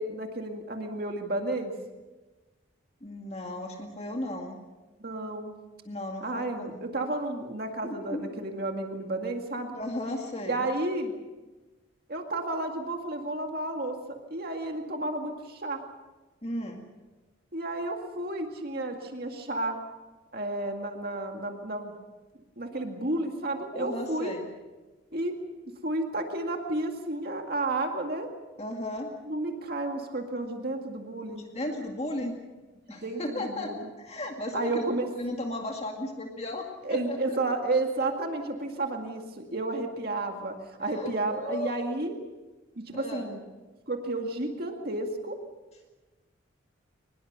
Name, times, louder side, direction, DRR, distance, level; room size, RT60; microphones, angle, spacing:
voice 1, 0.0-1.7 5.0-5.5 6.2-9.7 10.5-11.1 12.1-15.8 17.5-19.8 20.3-21.9 22.6-24.3 25.1-25.4 25.8-28.3 29.3-31.5 32.9-33.9 34.5-35.1 36.8-40.5 40.8-42.1 42.8-43.4 43.9-45.4, right 2 dB, 50° right, 3 dB, 2.1 m, -32 dB
voice 2, 3.0-4.6 5.9-6.8 7.8-8.3 9.7-10.7 16.4-16.9 23.7-24.5 28.6-29.1 31.4-32.3 32.9-34.8 35.2-37.2 40.8-41.7 42.9-43.3, left 1 dB, 30° left, 2 dB, 2.1 m, -35 dB
23.5 x 20.5 x 6.8 m, 1.2 s
head